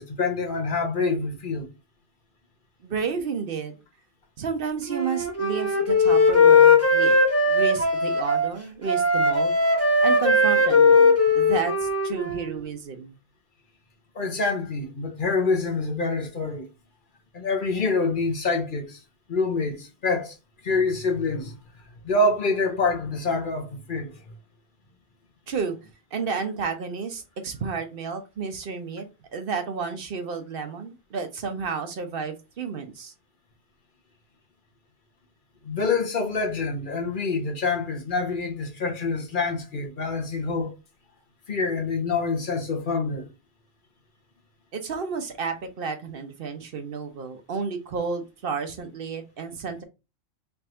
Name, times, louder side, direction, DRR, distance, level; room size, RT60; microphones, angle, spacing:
voice 1, 0.0-1.7 14.1-16.6 17.3-19.0 19.3-20.4 20.6-21.6 22.0-24.1 35.6-40.7 41.5-43.3, left 3 dB, 55° left, 1.0 m, -26 dB
voice 2, 2.8-3.7 4.4-7.2 7.5-9.5 10.0-13.2 25.5-25.8 26.1-29.1 29.3-33.1 44.7-49.8, right 5 dB, 65° right, 0.9 m, -31 dB
Wind instrument woodwind instrument, 4.9-8.5 8.9-12.5, left 3 dB, 15° left, 0.8 m, -19 dB
3.4 x 2.6 x 4.3 m
omnidirectional pair, 1.1 m